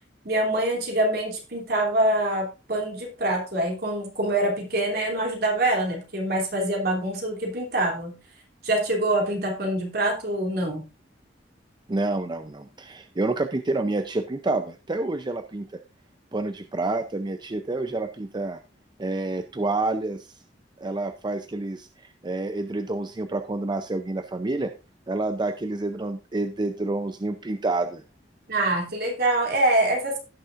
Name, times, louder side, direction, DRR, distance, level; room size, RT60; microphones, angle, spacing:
voice 1, 0.2-8.2 8.6-10.8 28.5-30.2, right 1 dB, 60° right, 1 dB, 3.0 m, -25 dB
voice 2, 11.9-15.8 16.3-18.6 19.0-20.3 20.8-24.7 25.1-28.0, right 2 dB, 25° right, 8 dB, 0.5 m, -28 dB
16.5 x 6.5 x 2.5 m, 0.30 s
head